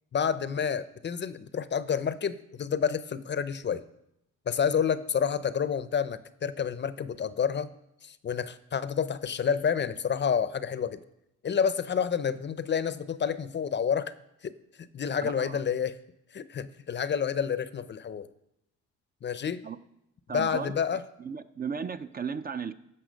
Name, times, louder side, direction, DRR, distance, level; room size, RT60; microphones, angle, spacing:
voice 1, 0.1-3.8 4.5-7.7 8.0-11.0 11.4-14.1 14.4-14.6 14.9-16.0 16.3-18.3 19.2-19.6 20.3-21.0, left 7 dB, 35° left, 15 dB, 0.6 m, -29 dB
voice 2, 15.2-15.6 19.6-19.8 20.3-20.7 21.2-22.7, right 6 dB, 30° right, 11 dB, 0.5 m, -35 dB
15.0 x 5.8 x 5.1 m, 0.83 s
cardioid pair, 90°, 30 cm